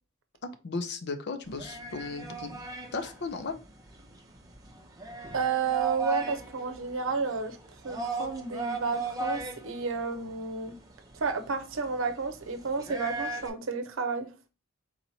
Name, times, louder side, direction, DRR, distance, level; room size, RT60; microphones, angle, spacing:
voice 1, 0.4-2.5 2.9-3.6, left 3 dB, 55° left, 0.6 m, -35 dB
sound 1, 1.4-13.5, right 3 dB, 20° right, 0.7 m, -38 dB
voice 2, 5.3-7.6 7.8-10.8 11.1-14.3, right 5 dB, 65° right, 0.7 m, -31 dB
4.0 x 3.0 x 4.1 m
head